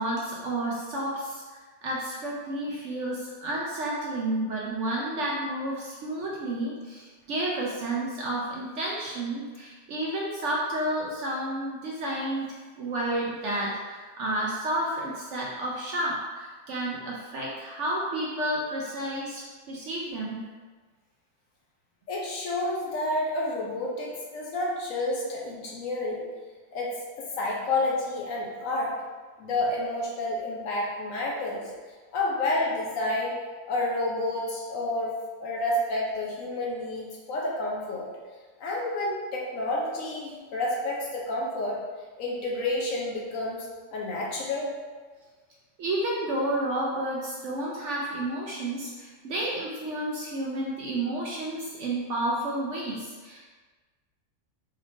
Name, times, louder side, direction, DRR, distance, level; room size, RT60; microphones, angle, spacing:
voice 1, 0.0-20.4 45.8-53.4, right 1 dB, 65° right, -4 dB, 0.8 m, -31 dB
voice 2, 22.1-26.3 26.7-28.9 29.4-31.6 32.1-33.4 33.7-35.1 35.4-38.1 38.6-41.8 42.2-44.7, left 2 dB, 65° left, -3 dB, 1.0 m, -29 dB
4.1 x 3.1 x 2.6 m, 1.4 s
omnidirectional pair, 1.6 m